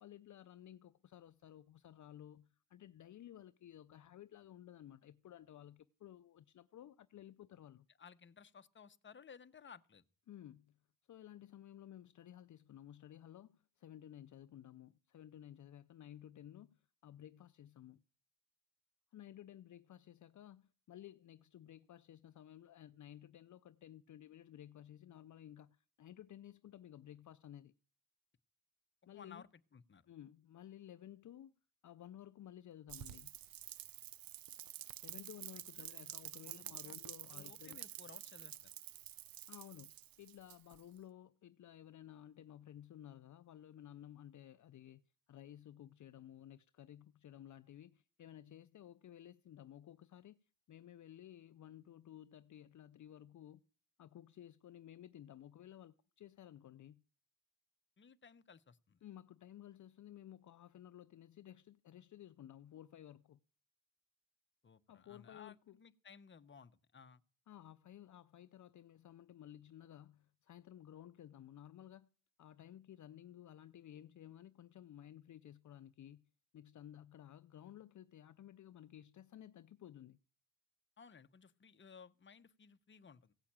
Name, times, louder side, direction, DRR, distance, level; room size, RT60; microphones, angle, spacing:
voice 1, 0.0-7.9 10.3-10.8 11.1-18.0 19.1-27.7 29.1-29.4 30.1-31.6 31.8-33.4 35.0-37.8 39.5-45.0 45.3-53.6 54.0-57.0 59.0-63.4 64.9-65.8 67.5-72.1 72.4-80.2, left 11 dB, 60° left, 0.5 m, -55 dB
voice 2, 8.0-10.0 29.1-30.1 36.4-37.0 37.3-38.7 58.0-59.0 64.6-67.2 81.0-83.3, left 6 dB, 35° left, 0.8 m, -58 dB
Rain, 32.9-41.0, right 13 dB, 80° right, 0.6 m, -50 dB
16.0 x 5.7 x 8.7 m
cardioid pair, 90°, 34 cm